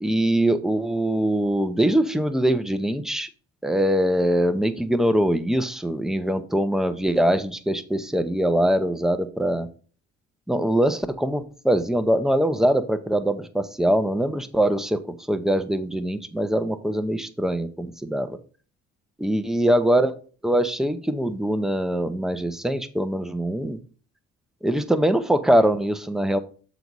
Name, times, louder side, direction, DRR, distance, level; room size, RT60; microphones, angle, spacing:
voice 1, 0.0-3.3 3.6-9.7 10.5-15.0 15.3-18.4 19.2-20.1 20.4-23.8 24.6-26.4, right 1 dB, ahead, 9 dB, 0.7 m, -23 dB
6.9 x 4.0 x 4.6 m, 0.40 s
cardioid pair, 90°, 30 cm